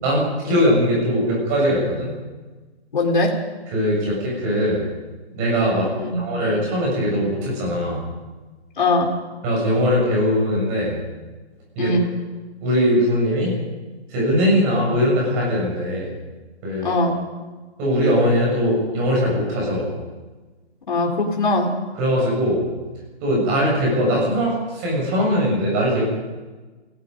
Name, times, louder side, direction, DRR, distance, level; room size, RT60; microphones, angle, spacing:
voice 1, 0.0-2.1 3.7-4.8 5.3-8.1 9.4-11.0 11.7-11.9 12.6-13.6 14.1-16.1 16.6-16.9 17.8-19.9 22.0-22.7 23.2-26.1, equal, 15° right, -3 dB, 6.8 m, -20 dB
voice 2, 2.9-3.3 5.9-6.2 8.8-9.1 11.8-12.0 16.8-17.2 20.9-21.8, left 2 dB, 45° left, 0 dB, 4.3 m, -20 dB
30.0 x 17.0 x 5.4 m, 1.3 s
hypercardioid pair, 175°, 33 cm